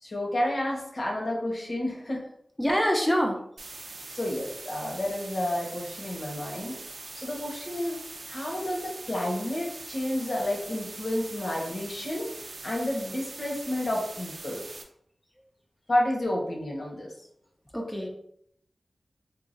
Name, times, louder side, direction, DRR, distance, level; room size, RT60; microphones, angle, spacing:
voice 1, 0.0-2.3 4.1-6.8 7.1-8.0 8.3-12.3 12.6-14.6 15.9-17.1, left 1 dB, 60° left, -2 dB, 1.1 m, -30 dB
voice 2, 2.6-3.4 17.7-18.1, equal, 5° left, 1 dB, 0.6 m, -25 dB
sound 1, 3.6-14.8, right 3 dB, 70° right, 0.5 m, -42 dB
4.7 x 2.4 x 2.6 m, 0.70 s
wide cardioid pair, 85°, 0 cm